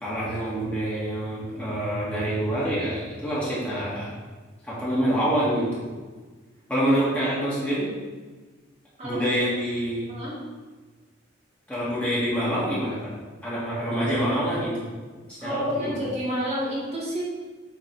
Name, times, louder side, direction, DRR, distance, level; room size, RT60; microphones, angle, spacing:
voice 1, 0.0-4.1 4.6-5.9 6.7-7.9 9.0-10.1 11.7-13.1 13.4-14.7 15.3-16.1, equal, 5° left, -8 dB, 1.8 m, -26 dB
voice 2, 9.0-9.5 10.1-10.4 15.4-17.2, equal, 35° right, -7 dB, 1.9 m, -29 dB
7.5 x 3.8 x 4.8 m, 1.4 s
head